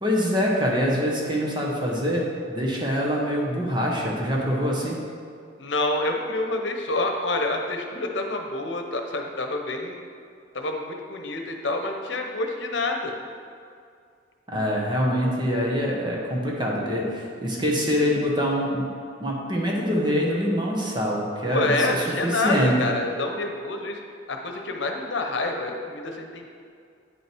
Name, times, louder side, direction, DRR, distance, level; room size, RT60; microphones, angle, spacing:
voice 1, 0.0-5.0 14.5-22.9, equal, 25° right, -3 dB, 1.3 m, -25 dB
voice 2, 5.6-10.0 10.5-13.1 21.5-24.0 24.3-26.4, left 2 dB, 75° left, 3 dB, 0.9 m, -27 dB
9.6 x 6.5 x 4.6 m, 2.3 s
head